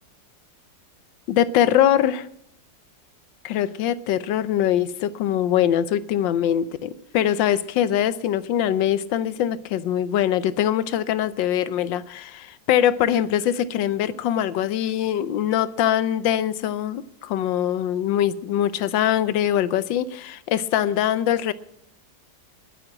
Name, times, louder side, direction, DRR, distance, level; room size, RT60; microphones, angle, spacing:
voice 1, 1.3-2.3 3.4-21.5, left 10 dB, 85° left, 16 dB, 1.4 m, -22 dB
12.0 x 9.4 x 8.6 m, 0.73 s
omnidirectional pair, 2.0 m